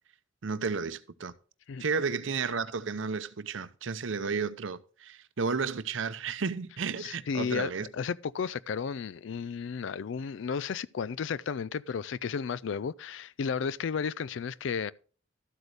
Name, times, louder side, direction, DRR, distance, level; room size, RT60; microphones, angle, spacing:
voice 1, 0.4-1.3 1.8-7.9, right 5 dB, 70° right, 0.7 m, -32 dB
voice 2, 7.0-14.9, left 6 dB, 65° left, 0.4 m, -33 dB
12.5 x 8.1 x 3.3 m
head